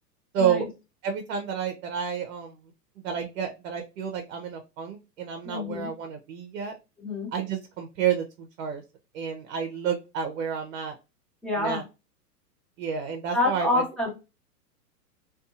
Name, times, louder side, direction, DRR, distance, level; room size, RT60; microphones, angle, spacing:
voice 1, 0.3-0.7 1.0-2.5 3.0-6.7 7.3-8.8 9.1-11.0 11.6-11.8 12.8-13.8, right 7 dB, 55° right, 5 dB, 0.6 m, -30 dB
voice 2, 5.4-5.9 7.0-7.3 11.4-11.8 13.3-14.1, left 2 dB, ahead, -2 dB, 0.6 m, -27 dB
2.6 x 2.3 x 2.5 m, 0.28 s
hypercardioid pair, 115°, 48 cm